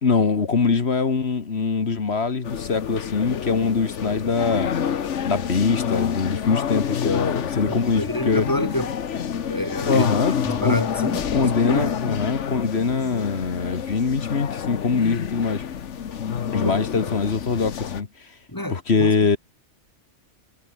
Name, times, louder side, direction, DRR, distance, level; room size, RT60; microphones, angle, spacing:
voice 1, 0.0-4.7 5.2-8.4 9.9-10.4 10.6-10.9 11.3-15.6 16.5-18.1 18.7-19.4, left 5 dB, 60° left, 1.9 m, -23 dB
sound 1, 2.4-18.0, left 8 dB, 80° left, 1.4 m, -28 dB
voice 2, 7.7-8.9 9.5-10.1 10.4-12.0 16.6-16.7 18.5-19.1, left 1 dB, 15° left, 3.8 m, -28 dB
omnidirectional pair, 1.2 m